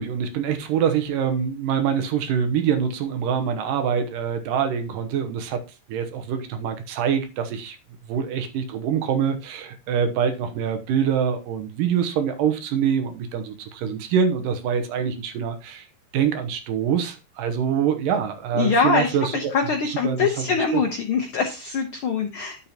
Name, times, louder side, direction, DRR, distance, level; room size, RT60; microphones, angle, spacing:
voice 1, 0.0-5.6 5.9-7.8 8.1-15.8 16.1-19.5 19.9-20.8, right 7 dB, 85° right, 2.7 m, -25 dB
voice 2, 18.5-22.7, left 5 dB, 75° left, 1.2 m, -23 dB
10.5 x 7.4 x 2.9 m
omnidirectional pair, 3.8 m